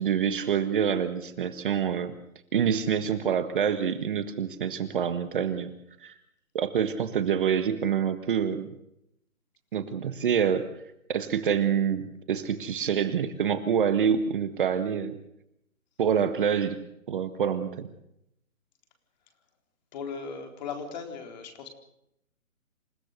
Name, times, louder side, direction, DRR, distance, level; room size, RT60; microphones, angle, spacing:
voice 1, 0.0-2.2 2.5-5.7 6.0-6.1 6.5-8.7 9.7-10.7 11.1-15.2 16.0-16.8 17.1-17.9, right 7 dB, 35° right, 10 dB, 1.6 m, -26 dB
voice 2, 19.9-21.7, left 5 dB, 30° left, 5 dB, 4.1 m, -37 dB
28.0 x 16.5 x 6.7 m, 0.79 s
hypercardioid pair, 160°, 42 cm